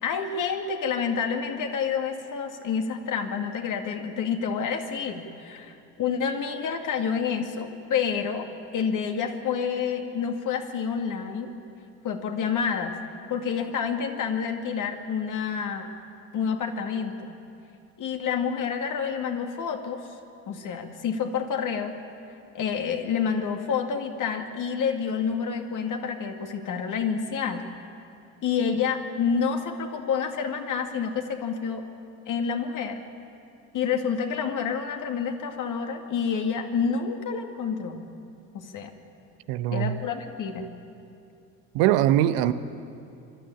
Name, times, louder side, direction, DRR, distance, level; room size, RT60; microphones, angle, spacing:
voice 1, 0.0-11.5 12.0-13.0 13.3-15.9 16.3-17.3 18.0-20.0 20.5-21.9 22.5-27.6 28.4-31.8 32.3-33.0 33.7-38.0 38.5-38.9 39.7-40.7, left 6 dB, 50° left, 2.3 m, -28 dB
voice 2, 39.5-39.9 41.7-42.5, right 12 dB, 65° right, 0.9 m, -21 dB
25.0 x 12.5 x 9.9 m
hypercardioid pair, 60°, 40 cm